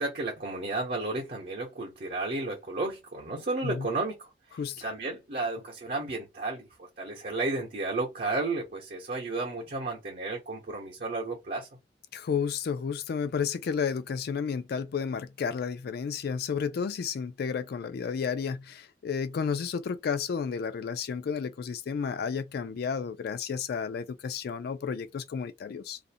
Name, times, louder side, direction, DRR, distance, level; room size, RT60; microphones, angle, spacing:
voice 1, 0.0-6.7 7.0-11.7, right 2 dB, 50° right, 0.7 m, -33 dB
voice 2, 4.5-4.8 12.1-26.0, left 6 dB, 55° left, 0.3 m, -32 dB
2.5 x 2.1 x 2.6 m
head